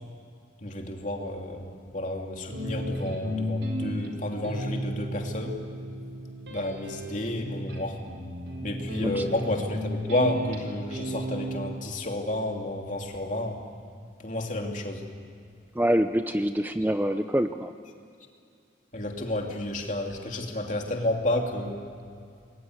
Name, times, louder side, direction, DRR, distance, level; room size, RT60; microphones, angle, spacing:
voice 1, 0.6-5.6 6.5-8.0 8.6-13.6 14.2-15.0 18.9-21.9, left 1 dB, 40° left, 2 dB, 3.1 m, -31 dB
sound 1, 2.5-11.7, equal, 90° right, 4.1 m, -34 dB
voice 2, 15.8-17.7, equal, 10° right, 8 dB, 0.6 m, -25 dB
27.0 x 22.0 x 9.8 m, 2.4 s
head